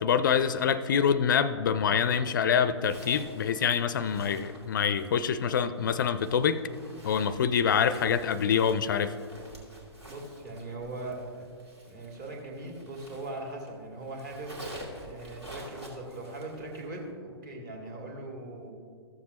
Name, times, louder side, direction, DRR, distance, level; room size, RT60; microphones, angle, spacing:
voice 1, 0.0-6.6 7.0-9.1, left 7 dB, 45° left, 15 dB, 0.4 m, -26 dB
Zipper (clothing), 2.8-13.7 14.0-17.0, right 1 dB, 70° right, 2.5 m, -49 dB
voice 2, 10.1-11.5 11.9-14.5 15.0-18.7, right 2 dB, 45° right, 0 dB, 2.0 m, -40 dB
14.5 x 7.2 x 2.9 m, 2.3 s
figure-of-eight pair, 115°, 14 cm